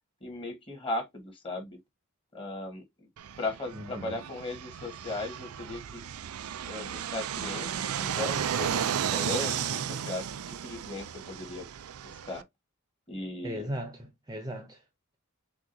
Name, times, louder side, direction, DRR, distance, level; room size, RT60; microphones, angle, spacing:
voice 1, 0.2-1.8 2.3-2.8 3.4-6.0 6.6-11.6 12.2-12.4 13.1-13.7, left 2 dB, 25° left, 1.6 m, -37 dB
Fixed-wing aircraft airplane, 3.2-12.4, right 9 dB, 90° right, 0.4 m, -34 dB
voice 2, 3.7-4.2 13.4-14.8, equal, 20° right, 0.8 m, -38 dB
6.1 x 2.4 x 2.8 m
head